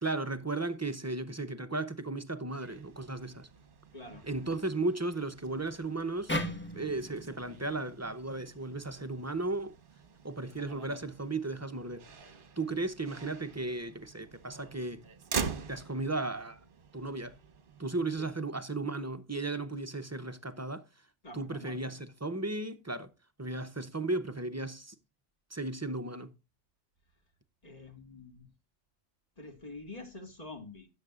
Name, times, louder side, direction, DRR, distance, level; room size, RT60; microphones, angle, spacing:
voice 1, 0.0-3.5 4.2-6.4 6.7-9.8 10.2-15.0 15.7-16.6 16.9-17.4 17.8-20.8 21.3-23.1 23.4-24.9 25.5-26.3, right 2 dB, 20° right, 0.5 m, -35 dB
Motor vehicle (road), 2.5-18.3, right 5 dB, 50° right, 1.1 m, -45 dB
voice 2, 3.9-4.3 18.2-18.3 21.2-21.8 27.6-28.5 29.4-30.9, left 2 dB, 35° left, 1.7 m, -47 dB
sound 1, 6.3-9.5, equal, 10° left, 1.4 m, -39 dB
13.0 x 8.8 x 2.4 m
omnidirectional pair, 1.2 m